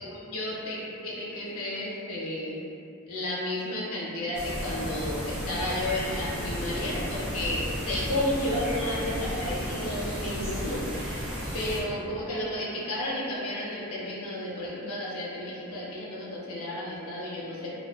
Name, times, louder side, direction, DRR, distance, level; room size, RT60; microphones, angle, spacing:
voice 1, 0.0-2.6 3.1-10.8 11.5-17.7, left 1 dB, 85° left, -6 dB, 0.6 m, -32 dB
sound 1, 4.3-11.8, equal, 5° right, 0.3 m, -33 dB
2.4 x 2.2 x 2.3 m, 2.6 s
head